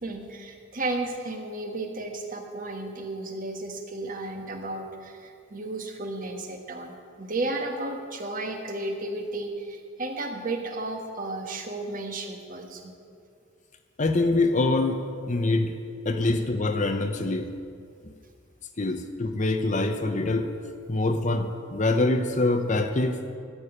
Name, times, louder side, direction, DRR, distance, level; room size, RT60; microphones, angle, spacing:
voice 1, 0.0-12.9, right 2 dB, 45° right, 3 dB, 1.4 m, -33 dB
voice 2, 14.0-15.7 16.0-17.5 18.8-20.5 20.9-23.2, left 2 dB, 40° left, 7 dB, 0.8 m, -25 dB
12.5 x 7.0 x 10.0 m, 2.3 s
head